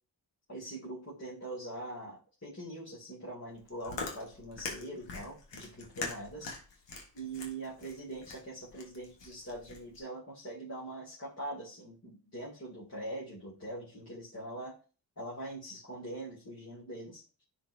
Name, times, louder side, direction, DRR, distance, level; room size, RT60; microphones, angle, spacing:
voice 1, 0.5-6.8 7.1-14.8 15.2-17.2, right 1 dB, 35° left, -6 dB, 2.7 m, -43 dB
Chewing mastication, 3.5-10.0, left 3 dB, 90° left, 1.5 m, -43 dB
9.9 x 4.1 x 2.7 m, 0.37 s
cardioid pair, 65°, 41 cm